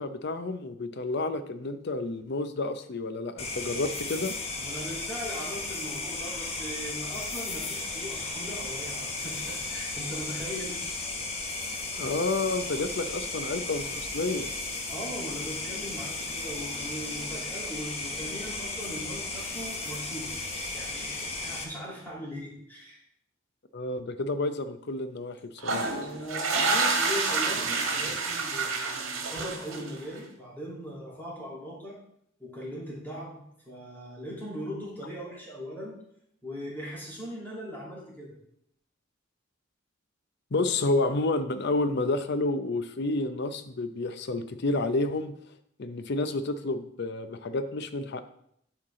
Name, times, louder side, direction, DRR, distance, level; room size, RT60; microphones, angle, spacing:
voice 1, 0.0-4.3 12.0-14.5 23.7-26.0 40.5-45.3 45.8-48.3, left 2 dB, 55° left, 10 dB, 0.6 m, -30 dB
sound 1, 3.4-21.6, left 3 dB, 30° left, 1.1 m, -35 dB
voice 2, 4.6-10.8 14.9-20.3 20.7-23.0 26.0-32.0 32.4-33.4 33.6-35.9 36.4-38.3, equal, 10° left, -7 dB, 3.2 m, -39 dB
sound 2, 25.6-30.1, right 4 dB, 85° right, 1.5 m, -28 dB
11.5 x 4.7 x 3.7 m, 0.71 s
head